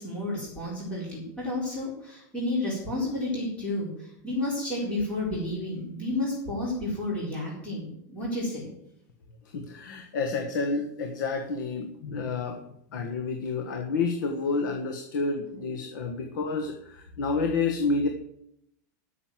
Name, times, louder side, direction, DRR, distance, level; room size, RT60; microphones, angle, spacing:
voice 1, 0.0-3.9 4.2-8.7, left 2 dB, 10° left, -5 dB, 4.3 m, -31 dB
voice 2, 9.5-12.7 12.9-18.1, left 4 dB, 85° left, 4 dB, 1.6 m, -29 dB
12.5 x 6.7 x 7.6 m, 0.74 s
supercardioid pair, 175°, 10 cm